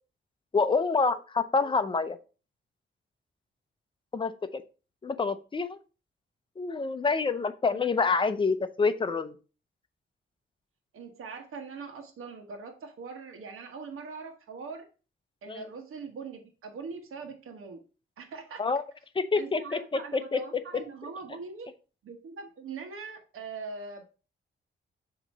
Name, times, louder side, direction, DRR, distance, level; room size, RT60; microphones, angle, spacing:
voice 1, 0.5-2.2 4.1-4.6 5.0-5.8 6.6-9.4 15.5-15.7 18.6-18.8 19.1-20.4, left 4 dB, 25° left, 10 dB, 0.6 m, -27 dB
voice 2, 10.9-14.9 15.4-17.8 18.2-18.6 19.3-21.7 22.0-24.0, right 4 dB, 85° right, 3 dB, 1.2 m, -42 dB
7.2 x 3.0 x 5.3 m, 0.35 s
wide cardioid pair, 150°, 21 cm